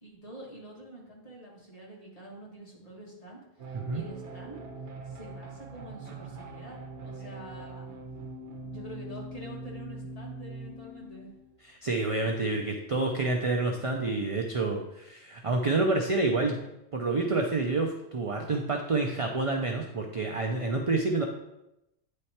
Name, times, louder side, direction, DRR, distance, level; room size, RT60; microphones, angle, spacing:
voice 1, 0.0-4.6 5.0-7.9 8.6-11.3, right 1 dB, 30° left, -5 dB, 1.9 m, -47 dB
sound 1, 3.6-11.5, right 2 dB, 70° right, 1.2 m, -42 dB
voice 2, 11.6-16.6 16.9-21.2, right 3 dB, 40° right, 1 dB, 0.5 m, -28 dB
9.3 x 3.3 x 4.3 m, 0.88 s
omnidirectional pair, 1.2 m